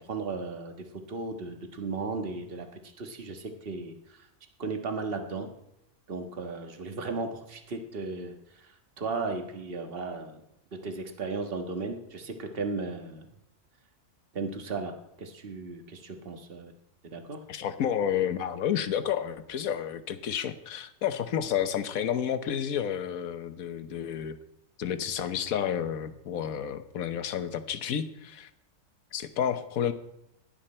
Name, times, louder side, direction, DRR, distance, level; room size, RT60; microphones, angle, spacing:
voice 1, 0.1-0.7 1.1-2.7 3.0-4.2 4.6-5.5 6.1-10.4 10.8-13.3 14.3-16.7 17.0-17.4, right 4 dB, 35° right, 5 dB, 1.7 m, -35 dB
voice 2, 17.5-24.4 24.8-28.5 29.1-29.9, left 9 dB, 65° left, 11 dB, 1.4 m, -30 dB
18.0 x 12.0 x 4.4 m, 0.85 s
omnidirectional pair, 1.7 m